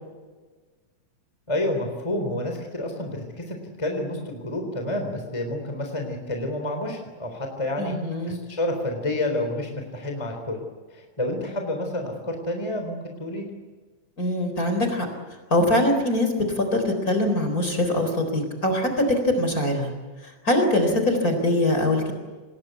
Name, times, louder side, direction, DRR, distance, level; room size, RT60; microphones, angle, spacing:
voice 1, 1.5-7.9 8.3-10.6 10.9-13.5, left 1 dB, 10° left, 4 dB, 3.6 m, -29 dB
voice 2, 7.8-8.4 14.2-15.1 15.5-19.9 20.2-22.1, left 1 dB, 25° left, 5 dB, 4.3 m, -23 dB
27.0 x 20.5 x 8.3 m, 1.3 s
omnidirectional pair, 3.7 m